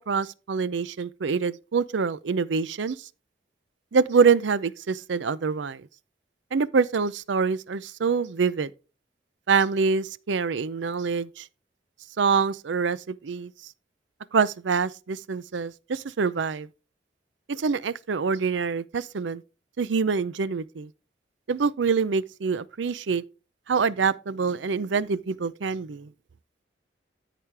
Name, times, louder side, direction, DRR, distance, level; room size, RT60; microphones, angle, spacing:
voice 1, 0.0-3.1 3.9-5.9 6.5-8.7 9.5-11.5 12.2-13.5 14.3-16.7 17.5-19.4 19.8-20.9 21.5-23.2 23.7-26.1, right 5 dB, 80° right, 0.5 m, -25 dB
13.5 x 5.0 x 3.3 m
head